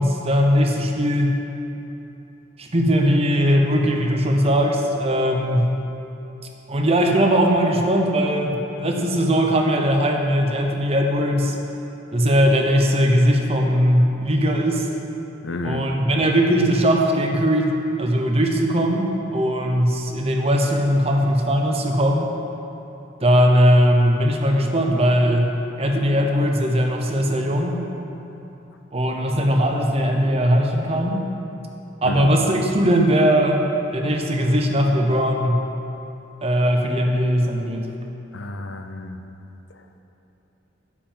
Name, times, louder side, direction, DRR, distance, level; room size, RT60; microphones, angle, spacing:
voice 1, 0.0-1.3 2.6-5.7 6.7-11.5 12.1-14.9 15.6-22.3 23.2-25.5 25.8-27.8 28.9-31.2 32.0-33.6 33.9-35.6 36.4-37.9, equal, 30° right, 2 dB, 0.9 m, -19 dB
voice 2, 15.4-15.9 32.0-32.3 38.3-39.2, left 3 dB, 85° left, 6 dB, 0.7 m, -30 dB
9.5 x 5.5 x 7.3 m, 2.9 s
head